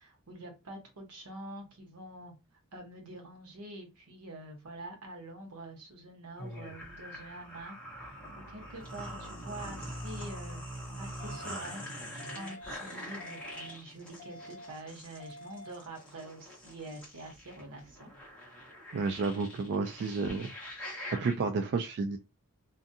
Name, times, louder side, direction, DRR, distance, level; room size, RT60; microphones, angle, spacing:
voice 1, 0.0-2.3 2.7-7.8 8.1-8.2 8.5-11.8 12.1-18.1, right 1 dB, 85° right, 2 dB, 1.0 m, -46 dB
sound 1, 6.4-21.3, equal, 5° left, 1.0 m, -44 dB
sound 2, 11.2-11.7 12.2-12.7 13.2-13.7 14.2-14.7 15.2-15.7, left 1 dB, 40° left, 1.0 m, -48 dB
voice 2, 18.9-20.5 20.9-22.2, right 4 dB, 50° right, 6 dB, 0.3 m, -31 dB
2.5 x 2.5 x 2.6 m, 0.26 s
head